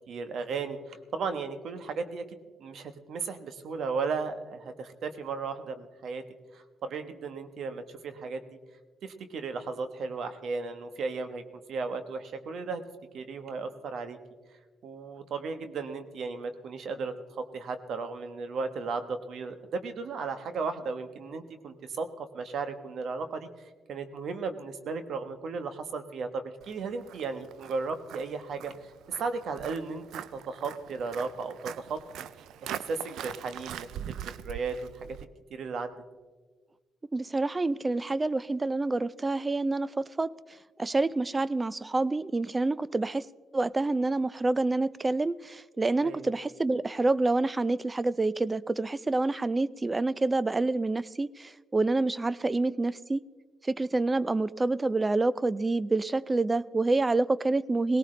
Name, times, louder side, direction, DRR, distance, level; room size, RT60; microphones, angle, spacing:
voice 1, 0.1-6.2 6.5-8.4 9.0-11.4 11.7-12.8 13.1-14.2 14.8-28.9 29.2-32.3 32.6-34.2 34.4-35.2 35.5-35.9 46.0-46.3, right 4 dB, 65° right, 9 dB, 1.2 m, -35 dB
Walk footsteps, 26.6-35.3, right 10 dB, 80° right, 0.4 m, -42 dB
voice 2, 37.1-40.3 40.8-43.3 43.5-53.2 53.6-58.0, right 2 dB, 20° right, 19 dB, 0.4 m, -27 dB
18.5 x 18.0 x 3.3 m, 1.4 s
cardioid pair, 90°, 0 cm